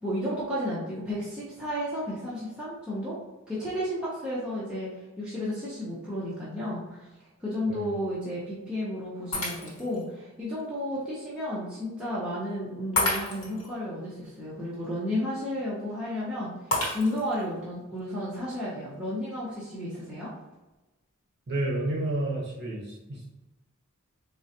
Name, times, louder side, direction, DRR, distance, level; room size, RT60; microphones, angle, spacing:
voice 1, 0.0-3.2 3.5-4.9 5.2-7.1 7.4-20.3, left 1 dB, 5° right, -9 dB, 0.6 m, -32 dB
Shatter, 9.3-10.0 10.6-10.7 13.0-13.7 16.7-17.4, left 1 dB, 70° left, 1.0 m, -29 dB
voice 2, 21.5-23.3, right 1 dB, 50° right, -4 dB, 0.8 m, -30 dB
3.6 x 2.1 x 2.7 m, 1.1 s
head